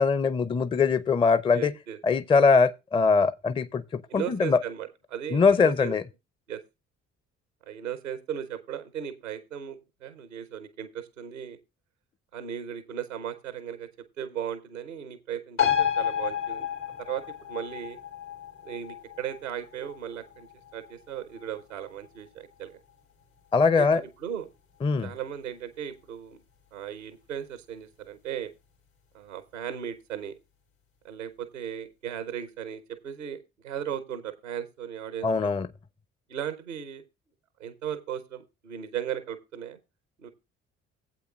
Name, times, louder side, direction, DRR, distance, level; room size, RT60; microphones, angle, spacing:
voice 1, 0.0-1.7 2.0-4.6 5.3-6.0 23.5-24.0 24.8-25.1 35.2-35.7, left 5 dB, 15° left, 0.5 m, -22 dB
voice 2, 1.5-2.0 4.1-6.0 6.5-6.6 7.7-11.6 12.3-13.9 14.2-16.7 17.0-17.2 17.5-18.0 18.6-20.5 20.7-22.8 23.8-24.5 25.0-26.4 26.7-28.5 29.1-30.3 31.0-33.4 33.6-35.5 36.3-37.0 37.6-39.8 40.2-40.3, right 9 dB, 90° right, 0.7 m, -36 dB
sound 1, 15.6-22.5 22.9-23.0, left 9 dB, 85° left, 2.7 m, -31 dB
16.0 x 8.1 x 2.3 m
figure-of-eight pair, 45°, 37 cm